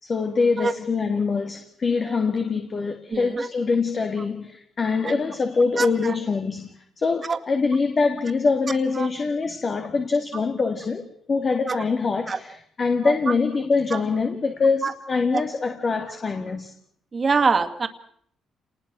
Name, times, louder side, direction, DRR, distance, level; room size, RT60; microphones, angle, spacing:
voice 1, 0.0-16.7, left 4 dB, 40° left, 2.1 m, -24 dB
voice 2, 3.1-3.5 5.0-5.1 5.8-6.2 7.3-7.4 9.0-9.1 11.7-11.8 12.3-12.4 13.0-13.1 13.9-14.0 14.8-14.9 15.3-15.4 17.1-17.9, right 4 dB, 35° right, 2.2 m, -24 dB
27.5 x 20.0 x 6.2 m
cardioid pair, 90°, 0 cm